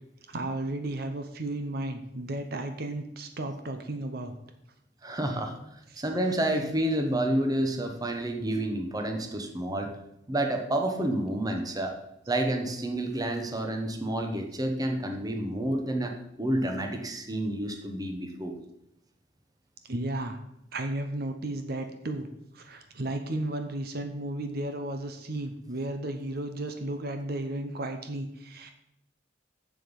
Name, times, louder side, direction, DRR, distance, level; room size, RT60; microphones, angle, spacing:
voice 1, 0.3-4.3 5.3-5.4 5.9-6.0 19.8-20.4 20.7-22.3 22.5-28.7, right 1 dB, 55° right, 7 dB, 0.8 m, -34 dB
voice 2, 5.0-5.6 6.0-9.9 10.3-12.0 12.3-18.5, right 1 dB, 20° right, 4 dB, 1.0 m, -29 dB
7.4 x 7.2 x 5.3 m, 0.82 s
head